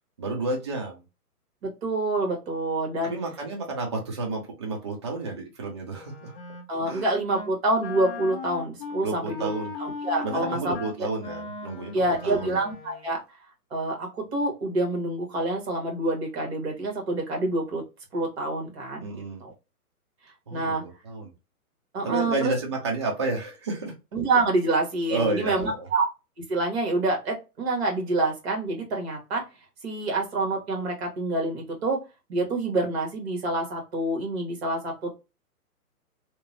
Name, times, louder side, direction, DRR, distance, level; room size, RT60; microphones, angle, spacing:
voice 1, 0.2-1.0 3.0-6.3 6.9-7.1 9.0-9.7 10.2-12.6 19.0-19.4 20.5-21.3 22.0-23.9 25.1-25.9, right 3 dB, 20° right, 0 dB, 0.4 m, -31 dB
voice 2, 1.6-3.1 6.7-9.5 9.8-10.7 11.9-13.2 13.7-17.8 18.1-19.1 19.4-19.5 20.5-20.8 21.9-22.5 24.1-26.1 26.5-29.4 29.8-32.0 32.3-35.1, right 2 dB, 40° right, 1 dB, 1.3 m, -27 dB
Wind instrument woodwind instrument, 5.9-7.0 7.3-7.6 7.8-13.1, left 4 dB, 35° left, 0.5 m, -38 dB
2.8 x 2.0 x 2.6 m, 0.27 s
hypercardioid pair, 140°, 46 cm